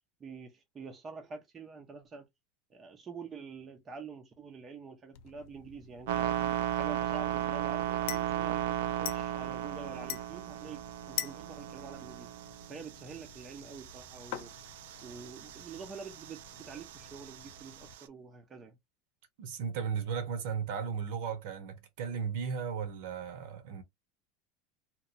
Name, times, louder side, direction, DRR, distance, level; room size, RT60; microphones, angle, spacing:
voice 1, 0.2-2.2 2.7-12.3 12.7-14.5 15.0-18.8, right 5 dB, 20° right, 0.5 m, -47 dB
sound 1, 5.1-17.9, left 11 dB, 60° left, 0.4 m, -46 dB
sound 2, 6.1-18.0, right 11 dB, 80° right, 0.3 m, -36 dB
voice 2, 19.4-23.8, right 6 dB, 60° right, 0.7 m, -35 dB
2.8 x 2.2 x 2.5 m
supercardioid pair, 175°, 0 cm